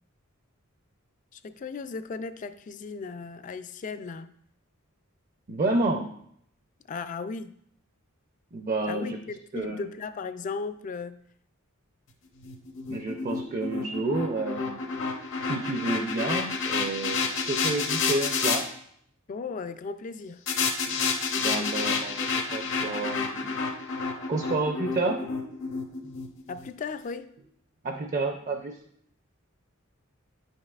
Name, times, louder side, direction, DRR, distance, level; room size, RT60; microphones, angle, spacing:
voice 1, 1.3-4.3 6.9-7.5 8.9-11.2 19.3-20.4 26.5-27.4, left 4 dB, 35° left, 11 dB, 0.3 m, -36 dB
voice 2, 5.5-6.1 8.5-9.2 9.5-9.9 12.9-14.8 15.4-18.7 21.4-23.5 24.3-25.3 27.8-28.8, right 2 dB, 35° right, 4 dB, 0.5 m, -30 dB
sound 1, 12.4-18.6 20.5-26.7, left 5 dB, 60° left, 0.8 m, -30 dB
9.6 x 5.3 x 2.4 m, 0.69 s
head